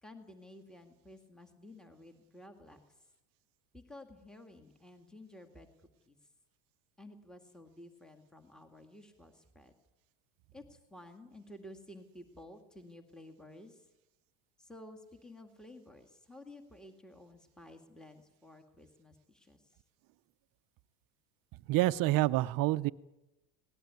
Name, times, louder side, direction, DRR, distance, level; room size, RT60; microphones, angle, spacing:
voice 1, 0.0-2.8 3.7-5.7 6.1-6.2 7.0-9.7 10.5-13.9 14.6-19.6, left 1 dB, ahead, 5 dB, 2.0 m, -53 dB
voice 2, 21.7-22.9, right 17 dB, 45° right, 16 dB, 0.7 m, -27 dB
19.0 x 17.5 x 9.5 m, 0.99 s
supercardioid pair, 120°, 47 cm